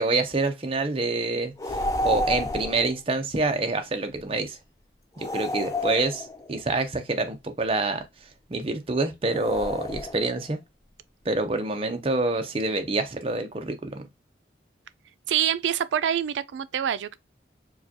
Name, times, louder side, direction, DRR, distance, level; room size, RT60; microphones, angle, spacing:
voice 1, 0.0-1.5 2.0-4.6 5.3-8.0 8.5-10.6 11.3-14.0, right 2 dB, 30° right, 0.6 m, -26 dB
sound 1, 1.6-2.9 5.2-6.6 9.3-10.4, left 1 dB, 20° left, 0.4 m, -30 dB
voice 2, 15.3-17.2, right 9 dB, 80° right, 0.3 m, -26 dB
4.6 x 2.2 x 2.8 m
head